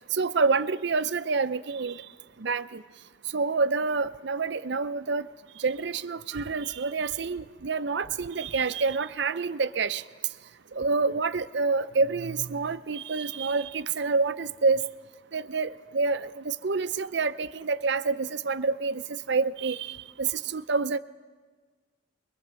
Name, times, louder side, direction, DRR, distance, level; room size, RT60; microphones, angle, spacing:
voice 1, 0.1-2.0 2.4-2.8 3.3-5.3 5.6-10.0 10.7-14.8 15.3-21.0, right 4 dB, 60° right, 12 dB, 0.6 m, -27 dB
22.5 x 21.0 x 6.9 m, 1.5 s
head